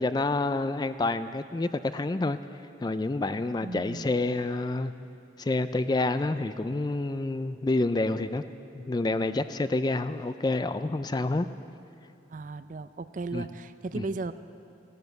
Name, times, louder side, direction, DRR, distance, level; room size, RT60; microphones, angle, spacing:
voice 1, 0.0-2.4 2.8-4.9 5.4-8.4 8.7-11.5 13.3-13.5 13.9-14.1, left 2 dB, 20° left, 12 dB, 0.3 m, -28 dB
voice 2, 3.6-4.1 12.3-14.3, right 3 dB, 40° right, 13 dB, 0.4 m, -36 dB
14.5 x 12.0 x 7.9 m, 2.7 s
head